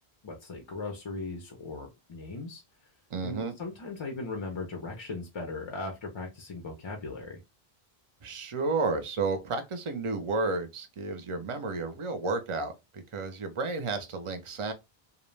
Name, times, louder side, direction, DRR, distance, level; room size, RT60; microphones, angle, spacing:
voice 1, 0.2-2.9 3.2-7.4, left 3 dB, 45° left, 0.4 m, -38 dB
voice 2, 3.1-3.5 8.2-14.7, right 3 dB, 45° right, 0.4 m, -32 dB
2.3 x 2.1 x 3.1 m
omnidirectional pair, 1.0 m